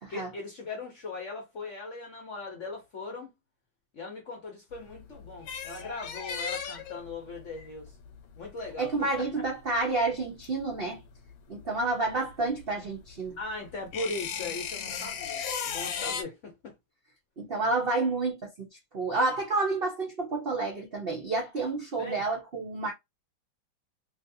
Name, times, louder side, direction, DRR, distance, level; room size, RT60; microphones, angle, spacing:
voice 1, 0.1-3.3 3.9-7.9 8.4-9.3 13.4-16.7 22.0-22.2, left 3 dB, 55° left, 0.8 m, -39 dB
sound 1, 4.7-11.3 11.6-16.2, left 7 dB, 80° left, 1.5 m, -36 dB
voice 2, 8.8-11.0 11.5-13.4 17.4-18.7 18.9-22.9, right 3 dB, 70° right, 0.5 m, -29 dB
3.1 x 2.8 x 2.6 m
omnidirectional pair, 2.2 m